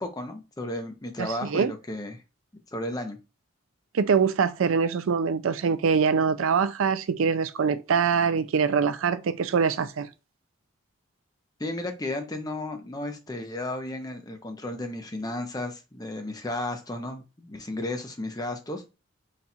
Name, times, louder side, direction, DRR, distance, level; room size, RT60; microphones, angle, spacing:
voice 1, 0.0-2.2 2.7-3.2 11.6-18.9, left 1 dB, 20° left, 0.6 m, -33 dB
voice 2, 1.2-1.7 3.9-10.1, right 6 dB, 70° right, 0.4 m, -24 dB
4.1 x 2.4 x 4.1 m
head